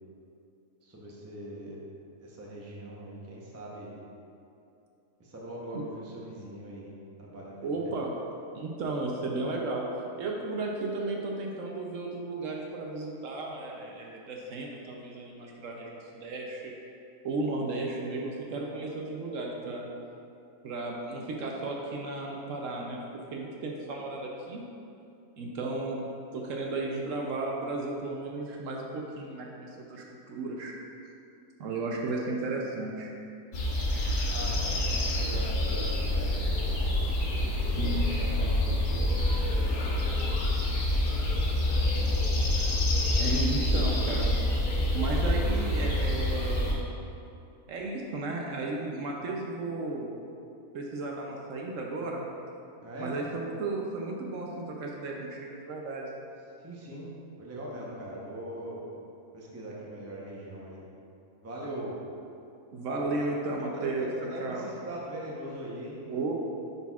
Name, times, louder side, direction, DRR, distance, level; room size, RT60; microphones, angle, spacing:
voice 1, 0.8-1.8 2.2-4.0 5.2-6.9 7.2-7.7 34.3-36.9 37.2-40.3 41.5-42.2 52.8-53.2 56.6-57.1 57.4-58.8 59.3-60.8 61.4-62.0 63.0-63.3 63.6-66.1, right 1 dB, 15° right, -5 dB, 0.5 m, -41 dB
voice 2, 7.6-8.1 8.5-9.9 10.2-16.6 17.2-19.9 20.6-23.0 23.3-24.6 25.4-26.0 26.3-30.7 31.6-33.1 37.8-38.1 43.2-44.3 44.9-46.8 47.7-50.1 50.7-52.3 53.0-56.2 62.7-64.6 66.1-66.3, right 2 dB, 70° right, -1 dB, 0.9 m, -34 dB
sound 1, 33.5-46.7, left 1 dB, 80° left, 1.4 m, -27 dB
9.9 x 4.1 x 2.4 m, 2.7 s
omnidirectional pair, 1.5 m